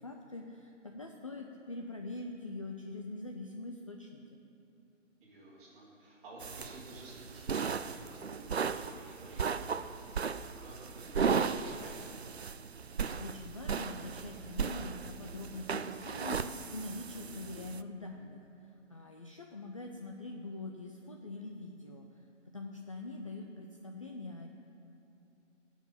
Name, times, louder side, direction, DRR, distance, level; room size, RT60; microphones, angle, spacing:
voice 1, 0.0-4.4 12.8-22.1 22.5-24.5, left 2 dB, 25° left, 2 dB, 0.6 m, -44 dB
voice 2, 5.2-10.0 10.6-12.1, right 1 dB, 15° right, -8 dB, 3.7 m, -52 dB
sound 1, 6.4-17.8, right 6 dB, 55° right, 0.6 m, -36 dB
17.0 x 7.2 x 8.6 m, 2.8 s
figure-of-eight pair, 145°, 38 cm